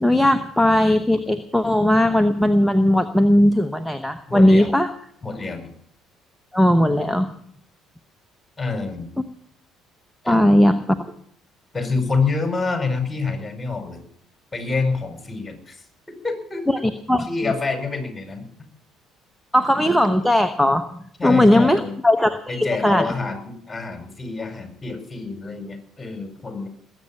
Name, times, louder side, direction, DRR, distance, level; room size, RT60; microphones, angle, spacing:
voice 1, 0.0-4.9 6.5-7.3 10.3-11.1 16.7-17.3 19.5-20.9 21.2-23.1, left 1 dB, ahead, 9 dB, 1.0 m, -18 dB
voice 2, 4.3-4.7 5.2-5.7 8.6-9.1 10.2-10.6 11.7-14.0 14.5-15.8 16.2-16.6 17.3-18.7 21.2-22.0 22.5-26.7, left 4 dB, 20° left, 5 dB, 4.9 m, -27 dB
20.0 x 8.8 x 7.1 m, 0.64 s
hypercardioid pair, 55°, 0 cm